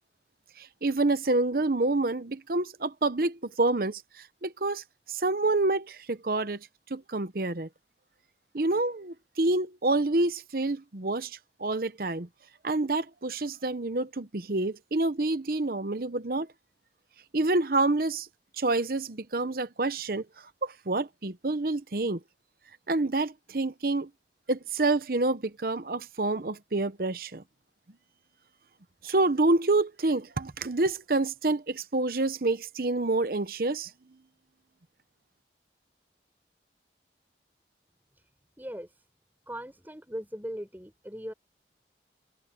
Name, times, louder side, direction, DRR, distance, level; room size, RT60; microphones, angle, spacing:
voice 1, 0.6-7.7 8.5-12.3 12.6-16.5 17.3-18.3 18.6-20.2 20.6-22.2 22.9-24.1 24.5-27.4 29.0-33.9, right 2 dB, 50° right, 0.9 m, -28 dB
voice 2, 38.6-39.0 39.5-41.3, equal, 10° right, 4.8 m, -39 dB
head